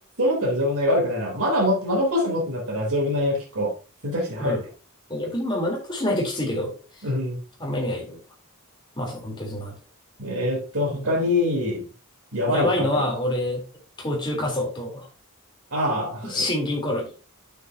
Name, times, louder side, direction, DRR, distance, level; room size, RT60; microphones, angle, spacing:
voice 1, 0.2-3.7 4.0-4.6 7.0-7.4 10.2-11.8 12.3-12.9 15.7-16.4, left 1 dB, 75° right, 3.5 m, -24 dB
voice 2, 5.1-6.7 7.6-8.2 8.9-9.7 10.9-11.1 12.4-13.6 14.0-15.1 16.2-17.1, left 1 dB, 20° left, 3.5 m, -26 dB
9.4 x 7.8 x 2.8 m
head